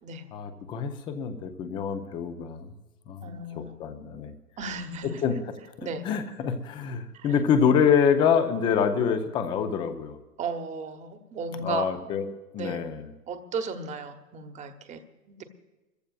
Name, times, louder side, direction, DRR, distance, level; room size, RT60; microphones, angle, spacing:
voice 1, 0.3-2.7 3.1-4.3 5.2-5.4 5.8-10.2 11.6-12.3 12.5-13.1, left 7 dB, 10° left, 9 dB, 0.5 m, -26 dB
voice 2, 3.2-3.8 4.6-5.2 5.8-6.0 7.1-7.3 10.4-11.9 12.6-12.8 13.3-15.4, right 4 dB, 15° right, 8 dB, 1.0 m, -35 dB
29.0 x 14.5 x 2.4 m, 1.1 s
figure-of-eight pair, 110°, 47 cm